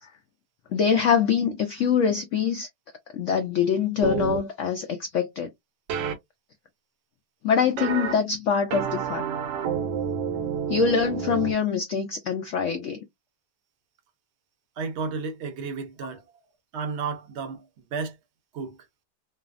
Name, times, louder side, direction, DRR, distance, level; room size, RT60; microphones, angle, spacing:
voice 1, 0.7-2.7 3.1-5.5 7.4-9.3 10.7-13.1, left 6 dB, 85° left, 0.6 m, -24 dB
sound 1, 4.0-4.4 5.9-6.1 7.8-8.1 8.7-11.5, right 7 dB, 85° right, 1.4 m, -29 dB
voice 2, 14.8-16.2 16.7-17.7 17.9-18.2 18.5-18.8, right 5 dB, 55° right, 0.8 m, -32 dB
3.1 x 2.0 x 2.4 m
omnidirectional pair, 1.9 m